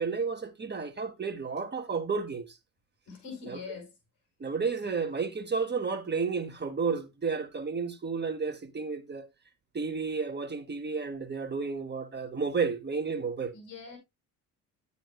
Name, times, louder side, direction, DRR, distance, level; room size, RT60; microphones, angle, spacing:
voice 1, 0.0-2.5 3.4-3.6 4.4-9.3 9.7-13.5, right 5 dB, 25° right, 1.1 m, -32 dB
voice 2, 3.1-3.9 13.5-14.0, left 5 dB, 85° left, 5.9 m, -42 dB
9.5 x 9.0 x 2.3 m
supercardioid pair, 65°, 38 cm